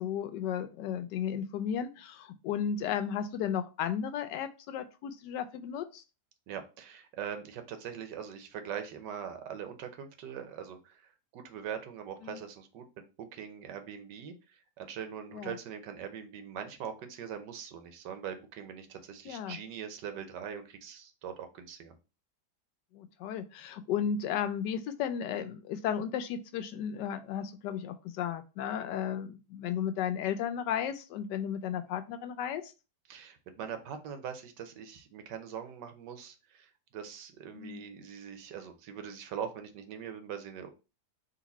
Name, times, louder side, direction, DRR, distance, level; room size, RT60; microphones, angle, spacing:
voice 1, 0.0-6.0 12.2-12.4 15.3-15.6 19.3-19.6 22.9-32.6 37.5-37.8, left 8 dB, 85° left, 10 dB, 1.2 m, -34 dB
voice 2, 6.5-13.0 13.3-21.9 33.1-40.7, right 8 dB, 90° right, 7 dB, 1.4 m, -42 dB
4.0 x 2.6 x 4.1 m, 0.31 s
omnidirectional pair, 1.8 m